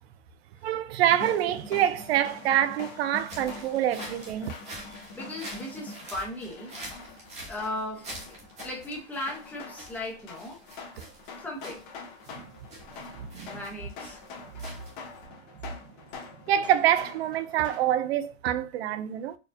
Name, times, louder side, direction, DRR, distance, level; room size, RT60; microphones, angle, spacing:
voice 1, 0.6-4.5 13.2-13.6 16.5-19.4, right 11 dB, 55° right, 0.5 m, -26 dB
sound 1, 1.0-17.9, left 4 dB, 35° left, 1.1 m, -45 dB
sound 2, 3.2-15.2, right 1 dB, 15° right, 1.1 m, -46 dB
voice 2, 5.1-7.1 7.5-10.6 11.4-11.9 13.5-14.2, left 1 dB, 5° left, 0.8 m, -37 dB
4.4 x 2.3 x 2.6 m
hypercardioid pair, 145°, 39 cm